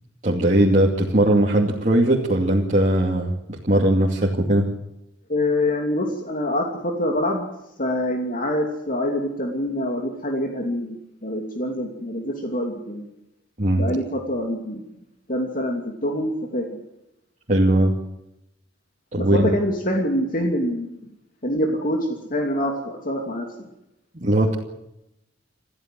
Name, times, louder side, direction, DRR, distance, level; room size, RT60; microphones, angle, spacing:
voice 1, 0.2-4.7 13.6-13.8 17.5-17.9 19.1-19.5 24.1-24.5, right 1 dB, 40° right, -2 dB, 2.7 m, -19 dB
voice 2, 5.3-7.4 7.8-13.0 13.8-14.9 15.3-16.8 19.2-21.0 21.4-23.7, left 1 dB, 45° left, 2 dB, 2.8 m, -25 dB
28.0 x 15.0 x 7.7 m, 0.88 s
head